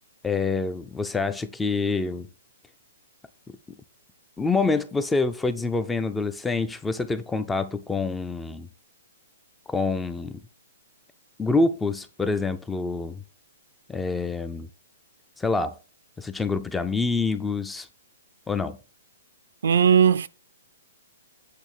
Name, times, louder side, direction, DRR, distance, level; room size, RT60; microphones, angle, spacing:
voice 1, 0.2-2.3 3.5-3.6 4.4-8.7 9.7-10.4 11.4-13.2 13.9-14.7 15.4-15.8 16.2-17.9 18.5-18.8, left 3 dB, 5° left, 0.4 m, -26 dB
voice 2, 19.6-20.3, right 7 dB, 70° right, 0.5 m, -18 dB
8.3 x 3.4 x 6.3 m
hypercardioid pair, 165°, 0 cm